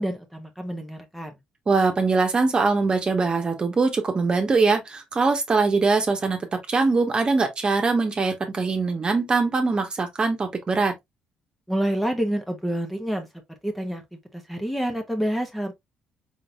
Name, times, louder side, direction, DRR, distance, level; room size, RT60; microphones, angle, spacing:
voice 1, 0.0-1.4 11.7-13.3 13.6-14.0 14.3-15.7, right 1 dB, 5° left, 1.0 m, -28 dB
voice 2, 1.7-11.0, right 4 dB, 35° right, 1.2 m, -22 dB
4.1 x 3.9 x 2.3 m
supercardioid pair, 70°, 3 cm